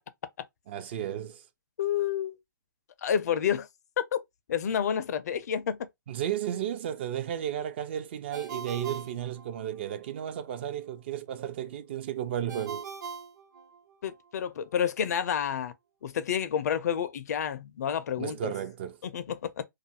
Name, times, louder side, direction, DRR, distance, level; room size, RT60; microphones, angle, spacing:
voice 1, 0.7-1.5 6.1-12.9 18.2-19.0, right 10 dB, 30° right, 0.3 m, -33 dB
voice 2, 1.8-2.4 3.0-3.7 4.1-4.2 4.5-5.8 14.0-15.7 16.0-18.5 19.0-19.6, left 8 dB, 50° left, 0.4 m, -29 dB
Ringtone, 8.3-10.0 12.5-14.2, right 5 dB, 60° right, 0.7 m, -41 dB
2.5 x 2.4 x 2.7 m
hypercardioid pair, 150°, 11 cm